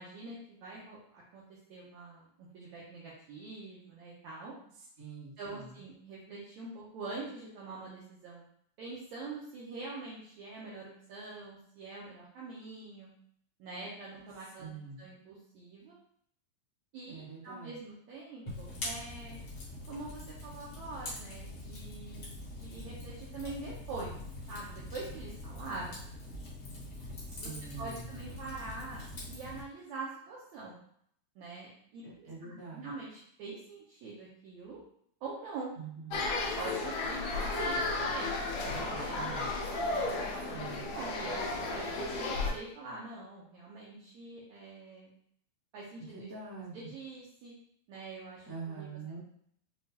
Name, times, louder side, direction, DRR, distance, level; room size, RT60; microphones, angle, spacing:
voice 1, 0.0-4.5 5.4-8.4 8.8-13.1 13.6-14.7 15.0-16.0 16.9-19.4 19.9-22.3 22.6-24.1 24.5-26.0 27.4-27.5 27.8-30.8 31.4-34.8 35.2-35.7 36.2-39.5 39.9-40.5 40.8-45.1 45.7-47.5 47.9-48.9, right 3 dB, 75° right, -5 dB, 1.8 m, -44 dB
voice 2, 5.0-5.7 14.6-15.0 17.1-17.8 27.2-28.1 32.0-32.9 35.8-36.2 38.7-39.5 40.5-40.8 46.1-46.8 48.4-49.2, right 5 dB, 45° right, -9 dB, 1.0 m, -45 dB
Fire, 18.5-29.6, left 1 dB, 65° left, 1.0 m, -43 dB
sound 1, 36.1-42.5, left 3 dB, 80° left, 1.5 m, -33 dB
6.5 x 2.5 x 2.8 m, 0.68 s
omnidirectional pair, 4.1 m